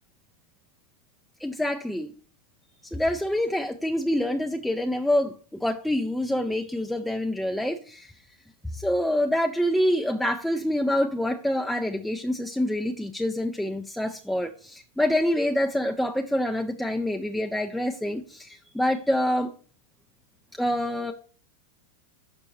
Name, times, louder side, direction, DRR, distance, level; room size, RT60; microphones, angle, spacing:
voice 1, 1.4-2.1 2.9-5.3 5.6-8.1 8.7-19.5 20.6-21.1, left 1 dB, ahead, 0.4 m, -26 dB
6.3 x 5.3 x 4.1 m
figure-of-eight pair, 90°, 0 cm